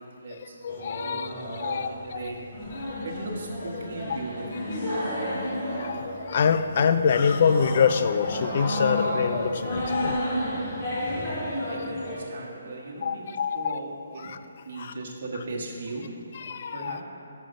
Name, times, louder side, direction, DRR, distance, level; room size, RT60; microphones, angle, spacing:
voice 1, 0.0-0.6 1.0-2.5 3.0-4.7 11.5-14.3 14.6-16.1 16.7-17.0, right 2 dB, 50° right, -2 dB, 1.3 m, -38 dB
voice 2, 0.6-1.3 1.6-1.9 5.3-5.5 5.8-10.4 11.1-11.2 13.0-13.8 16.5-17.0, left 6 dB, 45° left, 10 dB, 0.3 m, -25 dB
sound 1, 0.7-12.2, equal, 30° left, 1.5 m, -32 dB
6.3 x 5.6 x 5.2 m, 2.7 s
hypercardioid pair, 160°, 0 cm